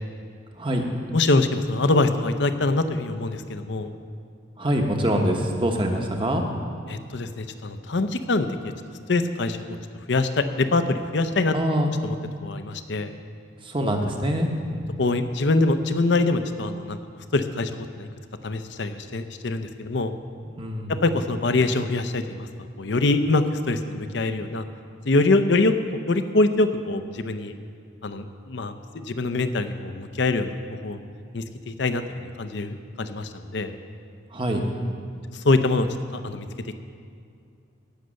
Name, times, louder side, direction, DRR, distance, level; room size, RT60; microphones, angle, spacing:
voice 1, 1.1-3.9 6.9-8.5 9.1-9.8 10.1-11.5 12.0-12.2 12.4-13.1 15.0-17.0 17.3-18.1 18.4-20.1 20.9-22.5 22.8-24.6 25.1-25.7 26.1-27.5 28.0-30.6 30.8-31.0 31.3-33.7 35.3-35.9 36.1-36.7, left 2 dB, 60° left, 9 dB, 0.7 m, -24 dB
voice 2, 4.6-6.4 11.5-11.9 13.6-14.8 20.6-21.0 34.3-34.6, equal, 25° right, 2 dB, 1.1 m, -24 dB
17.5 x 6.6 x 6.4 m, 2.4 s
head